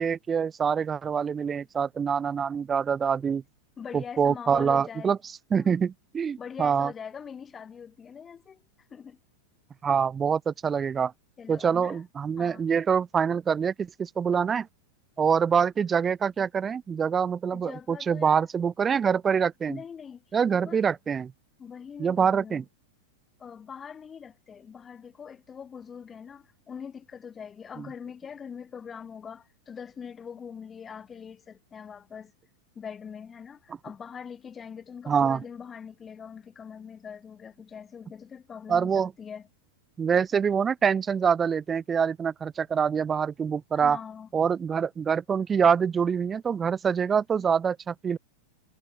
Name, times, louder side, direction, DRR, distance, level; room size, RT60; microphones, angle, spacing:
voice 1, 0.0-3.4 3.9-5.2 5.5-6.9 9.8-11.1 11.5-14.7 15.2-19.8 20.3-21.3 22.0-22.6 27.8-27.9 35.1-35.4 38.7-39.1 40.0-44.0 44.3-48.2, right 7 dB, 20° right, 0.4 m, -25 dB
voice 2, 3.8-5.1 5.5-5.8 6.4-8.6 8.9-9.2 11.4-12.0 12.4-12.6 17.5-18.5 19.7-20.2 20.5-20.9 21.6-22.7 23.4-32.3 32.7-39.5 43.7-44.3, left 7 dB, 20° left, 7.9 m, -42 dB
hypercardioid pair, 115°, 0 cm